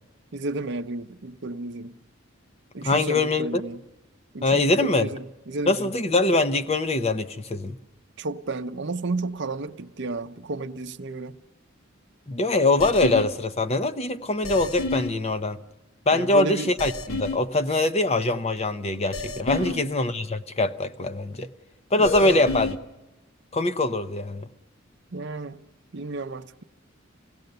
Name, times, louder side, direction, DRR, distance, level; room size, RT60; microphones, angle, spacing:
voice 1, 0.3-1.9 2.7-3.8 4.3-5.9 8.2-11.4 16.1-16.7 19.5-19.9 22.0-22.6 25.1-25.6 25.9-26.6, right 3 dB, 60° right, 0.7 m, -32 dB
voice 2, 2.8-3.6 4.4-5.1 5.7-7.8 12.3-15.6 16.1-21.5 21.9-22.7 23.5-24.5, left 2 dB, 30° left, 0.7 m, -23 dB
sound 1, 12.8-13.3 14.4-15.1 16.8-17.4 19.1-19.7 22.0-22.8, left 3 dB, 85° left, 1.4 m, -30 dB
27.5 x 17.5 x 6.8 m
head